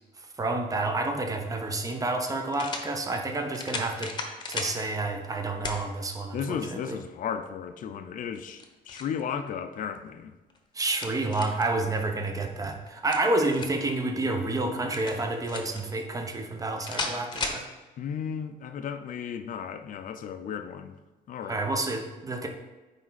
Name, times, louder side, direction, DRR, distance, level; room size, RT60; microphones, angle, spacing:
voice 1, 0.4-4.1 4.5-7.0 10.7-17.6 21.4-22.5, right 2 dB, 20° right, 4 dB, 1.0 m, -29 dB
sound 1, 1.3-1.4 2.5-2.9 3.5-4.8 5.6-5.8 6.4-6.5 8.3-9.2 10.5-11.7 12.9-13.9 14.9-15.8 16.8-17.6, left 3 dB, 25° left, 1.0 m, -35 dB
voice 2, 6.3-10.3 12.0-12.2 18.0-20.9 21.3-21.6, left 7 dB, 50° left, 9 dB, 0.6 m, -34 dB
9.2 x 3.6 x 4.1 m, 1.2 s
cardioid pair, 110°, 17 cm